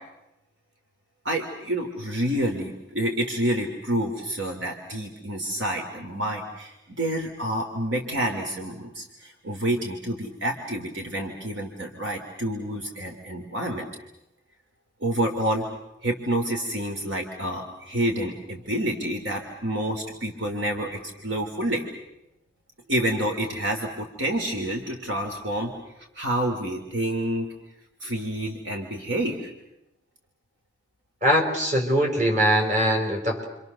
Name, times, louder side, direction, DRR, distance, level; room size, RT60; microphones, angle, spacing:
voice 1, 1.2-13.9 15.0-15.7 16.0-21.9 22.9-25.7 26.1-27.5 28.0-29.5, right 1 dB, 65° right, 3 dB, 2.7 m, -28 dB
voice 2, 31.2-33.5, equal, 40° right, 2 dB, 5.4 m, -22 dB
29.5 x 25.5 x 6.7 m, 0.92 s
head